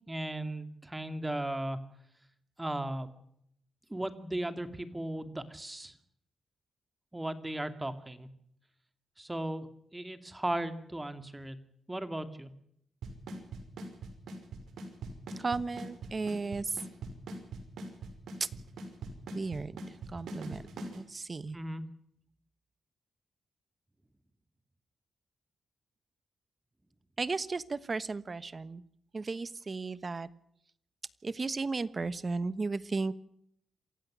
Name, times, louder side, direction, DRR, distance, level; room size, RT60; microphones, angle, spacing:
voice 1, 0.1-1.8 2.6-3.1 3.9-5.9 7.1-8.3 9.2-9.7 9.9-11.6 11.9-12.5 21.5-21.8, right 1 dB, 15° right, 9 dB, 2.5 m, -36 dB
Drum kit / Snare drum / Bass drum, 13.0-21.0, right 2 dB, 85° right, 5.6 m, -41 dB
voice 2, 15.4-16.8 18.4-18.5 19.3-19.8 20.1-20.6 20.9-21.6 27.2-28.8 29.1-30.3 31.2-33.1, right 3 dB, 35° right, 15 dB, 1.2 m, -34 dB
27.5 x 15.5 x 6.3 m, 0.71 s
cardioid pair, 105°, 0 cm